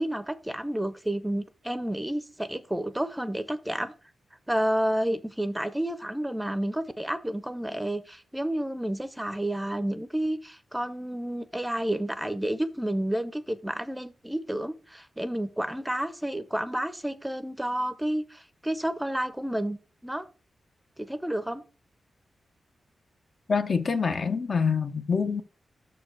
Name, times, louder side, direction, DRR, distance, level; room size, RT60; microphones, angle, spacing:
voice 1, 0.0-3.9 4.5-19.8 20.0-20.2 21.0-21.6, right 1 dB, 5° right, 0.6 m, -30 dB
voice 2, 23.5-25.4, left 5 dB, 55° left, 0.9 m, -26 dB
6.3 x 4.6 x 6.2 m
cardioid pair, 80°, 0 cm